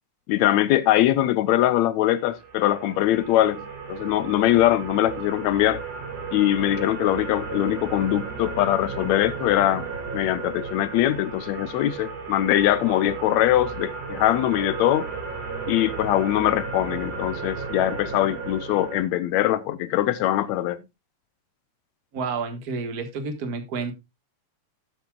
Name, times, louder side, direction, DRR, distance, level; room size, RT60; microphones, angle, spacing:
voice 1, 0.3-5.8 6.3-9.8 10.1-15.1 15.7-20.8, left 13 dB, 75° left, 1.9 m, -22 dB
sound 1, 2.2-19.0, right 5 dB, 85° right, 5.0 m, -34 dB
voice 2, 22.1-23.9, right 4 dB, 40° right, 1.5 m, -30 dB
13.0 x 9.3 x 2.3 m
omnidirectional pair, 3.4 m